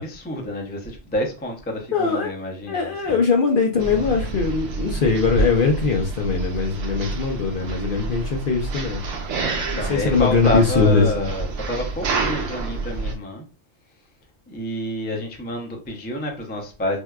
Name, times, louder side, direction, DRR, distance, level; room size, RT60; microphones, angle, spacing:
voice 1, 0.0-3.2 9.6-13.4 14.5-17.0, left 1 dB, 15° left, 0.3 m, -28 dB
voice 2, 1.9-2.3 2.7-9.0 9.7-11.3, left 5 dB, 60° left, 0.6 m, -21 dB
sound 1, 3.8-13.1, right 3 dB, 70° right, 1.0 m, -28 dB
4.4 x 2.2 x 2.3 m
omnidirectional pair, 1.3 m